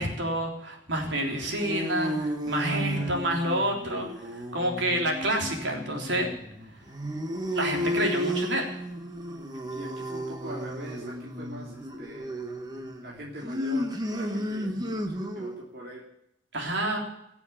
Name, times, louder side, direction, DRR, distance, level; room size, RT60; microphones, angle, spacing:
voice 1, 0.0-6.3 7.5-8.7 16.5-17.0, right 1 dB, 65° right, 1 dB, 3.5 m, -28 dB
sound 1, 1.2-15.6, equal, 20° right, 1.3 m, -33 dB
voice 2, 2.7-3.2 7.9-8.0 9.7-12.3 13.0-14.7 15.3-16.1, equal, 50° right, -3 dB, 3.0 m, -41 dB
18.5 x 7.4 x 8.5 m, 0.77 s
head